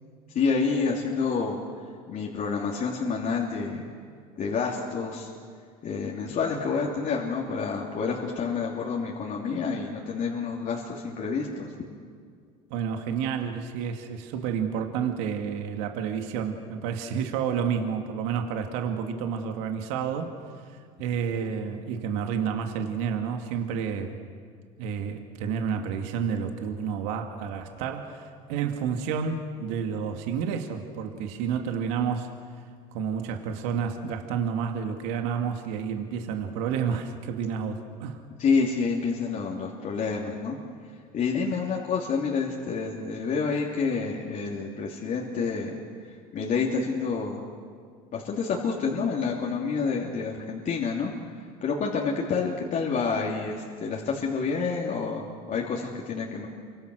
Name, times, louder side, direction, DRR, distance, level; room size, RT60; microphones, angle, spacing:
voice 1, 0.3-1.6 2.1-3.9 4.4-5.3 5.8-11.7 38.4-40.6 41.1-47.4 48.1-51.1 51.6-56.5, left 5 dB, 45° left, -2 dB, 3.0 m, -28 dB
voice 2, 12.7-20.4 20.7-24.2 24.8-32.3 32.9-38.2, right 7 dB, 75° right, 5 dB, 2.2 m, -30 dB
29.0 x 24.5 x 6.3 m, 2.1 s
supercardioid pair, 95°, 18 cm